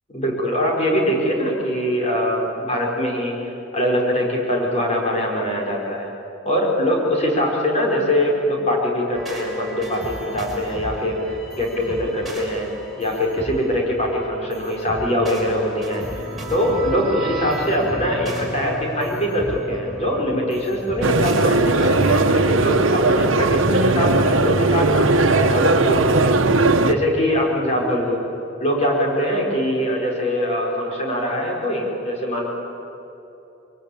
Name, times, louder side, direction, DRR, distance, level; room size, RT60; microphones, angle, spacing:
voice 1, 0.1-6.1 6.4-12.7 13.0-16.0 16.5-28.2 28.6-32.4, equal, 35° left, -2 dB, 5.3 m, -23 dB
sound 1, 9.1-22.4, right 1 dB, ahead, 6.0 m, -34 dB
sound 2, 21.0-26.9, right 2 dB, 80° right, 1.3 m, -18 dB
28.5 x 23.5 x 8.7 m, 3.0 s
head